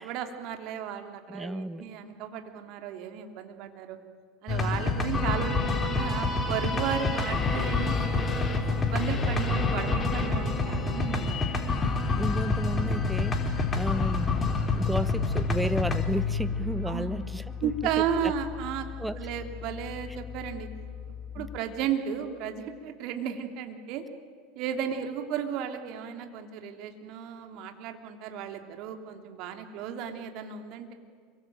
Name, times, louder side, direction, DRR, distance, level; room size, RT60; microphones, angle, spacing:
voice 1, 0.0-4.0 4.4-8.3 8.7-11.7 16.8-17.1 17.6-18.9 19.2-20.7 21.3-24.1 24.5-30.9, right 8 dB, 55° right, 6 dB, 3.1 m, -34 dB
voice 2, 1.3-1.8 12.2-13.5 13.7-17.7 18.2-18.3 19.0-19.2 21.4-21.5, right 1 dB, 5° right, 14 dB, 1.4 m, -33 dB
sound 1, 4.5-21.6, left 3 dB, 25° left, 4.1 m, -28 dB
27.0 x 23.5 x 9.3 m, 2.1 s
hypercardioid pair, 80°, 0 cm